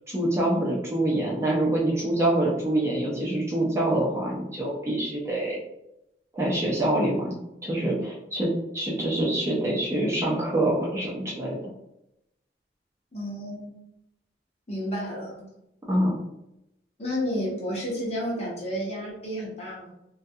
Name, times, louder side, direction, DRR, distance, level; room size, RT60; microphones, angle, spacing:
voice 1, 0.1-5.6 6.3-7.4 7.6-11.6 15.9-16.1, right 1 dB, 15° right, -5 dB, 0.5 m, -25 dB
voice 2, 13.1-13.8 14.7-15.5 17.0-19.9, equal, 35° left, -4 dB, 0.8 m, -31 dB
2.5 x 2.3 x 2.6 m, 0.85 s
head